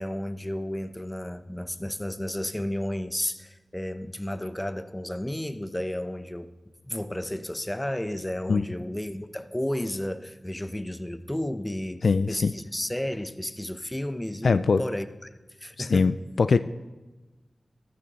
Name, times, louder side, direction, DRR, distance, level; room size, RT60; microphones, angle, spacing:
voice 1, 0.0-6.5 6.8-15.3 15.6-16.1, left 1 dB, 15° left, 0.8 m, -32 dB
voice 2, 12.0-12.5 14.4-14.8 15.8-16.6, left 4 dB, 75° left, 0.3 m, -22 dB
14.5 x 12.0 x 4.1 m
cardioid pair, 40°, 0 cm